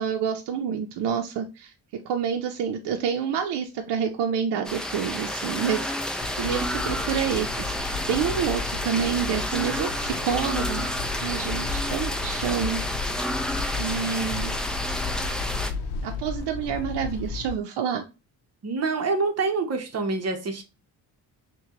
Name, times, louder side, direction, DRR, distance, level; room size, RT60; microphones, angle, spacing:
voice 1, 0.0-10.9 11.2-12.8 13.8-14.5 16.0-18.0, right 7 dB, 85° right, 3 dB, 0.6 m, -28 dB
sound 1, 4.6-15.7, equal, ahead, 0.3 m, -30 dB
sound 2, 6.2-17.6, left 5 dB, 85° left, 0.6 m, -34 dB
voice 2, 18.6-20.6, right 3 dB, 40° right, 5 dB, 0.8 m, -26 dB
5.8 x 2.2 x 2.9 m, 0.29 s
cardioid pair, 140°, 40 cm